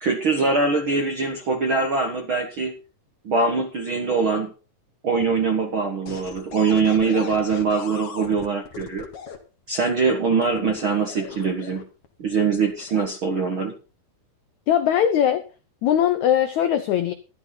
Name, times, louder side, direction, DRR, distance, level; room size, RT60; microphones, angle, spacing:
voice 1, 0.0-2.7 3.2-4.5 5.0-9.1 9.7-11.9 12.2-13.7, right 4 dB, 60° right, 4 dB, 1.4 m, -23 dB
sound 1, 6.1-9.4 10.4-12.1 12.7-13.1, left 6 dB, 45° left, 2.1 m, -38 dB
voice 2, 14.7-15.4 15.8-17.1, left 10 dB, 80° left, 10 dB, 1.6 m, -20 dB
13.0 x 12.5 x 4.0 m, 0.33 s
omnidirectional pair, 4.6 m